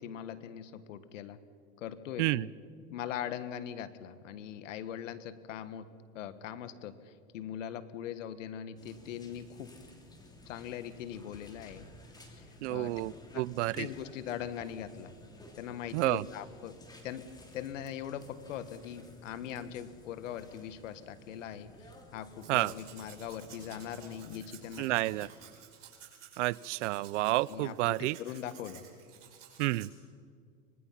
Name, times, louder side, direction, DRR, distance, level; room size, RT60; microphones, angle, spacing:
voice 1, 0.0-1.4 1.8-2.5 2.9-9.7 10.5-11.9 12.4-12.9 13.3-13.5 13.7-15.1 15.6-17.3 17.5-21.7 22.1-24.9 27.5-28.8, left 9 dB, 85° left, 13 dB, 1.5 m, -41 dB
sound 1, 8.8-25.3, left 1 dB, 10° left, 2.9 m, -54 dB
voice 2, 12.6-13.9 15.9-16.3 22.5-22.7 24.8-25.3 26.4-28.2 29.6-29.9, right 19 dB, 70° right, 22 dB, 0.6 m, -30 dB
Domestic sounds home sounds, 22.3-29.9, right 9 dB, 90° right, 5.4 m, -54 dB
25.0 x 20.5 x 5.8 m, 2.2 s
supercardioid pair, 140°, 37 cm